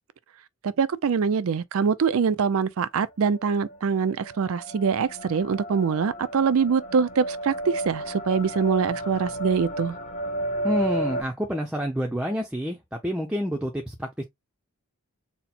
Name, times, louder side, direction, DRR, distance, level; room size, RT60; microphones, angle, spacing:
voice 1, 0.6-10.0, right 6 dB, 70° right, 0.4 m, -24 dB
sound 1, 3.3-11.2, right 1 dB, 35° left, 0.8 m, -32 dB
voice 2, 10.6-14.2, equal, 5° right, 0.5 m, -28 dB
4.2 x 2.1 x 4.2 m
head